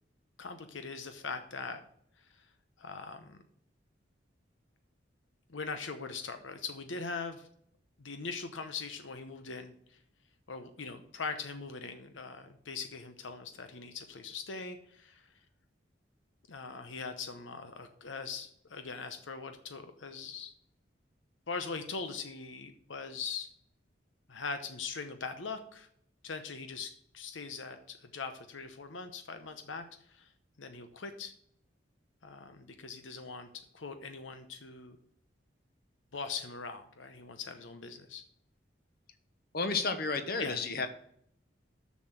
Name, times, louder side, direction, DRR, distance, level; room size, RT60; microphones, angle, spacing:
voice 1, 0.4-1.8 2.2-2.5 2.8-3.4 5.5-7.5 8.0-10.0 10.5-15.3 16.5-20.5 21.5-23.5 24.3-25.9 26.2-30.3 30.6-31.3 32.2-35.0 36.1-38.2 40.4-40.6, left 4 dB, 90° left, 8 dB, 0.9 m, -41 dB
voice 2, 39.5-40.9, left 4 dB, 55° left, 9 dB, 1.1 m, -32 dB
7.1 x 6.4 x 7.8 m, 0.68 s
head